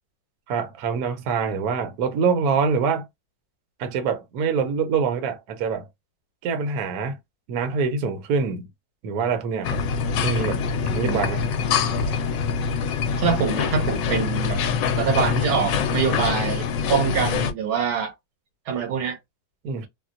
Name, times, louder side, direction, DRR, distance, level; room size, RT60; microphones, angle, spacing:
voice 1, 0.5-3.1 3.8-5.9 6.4-7.2 7.5-8.7 9.0-9.8 10.2-10.7 10.9-11.4 19.6-19.9, right 5 dB, 60° right, 1.1 m, -25 dB
sound 1, 9.6-17.5, left 6 dB, 75° left, 1.2 m, -24 dB
voice 2, 11.0-11.3 13.2-14.6 15.0-18.1 18.7-19.2, right 6 dB, 85° right, 2.0 m, -25 dB
4.1 x 2.1 x 2.5 m
omnidirectional pair, 2.1 m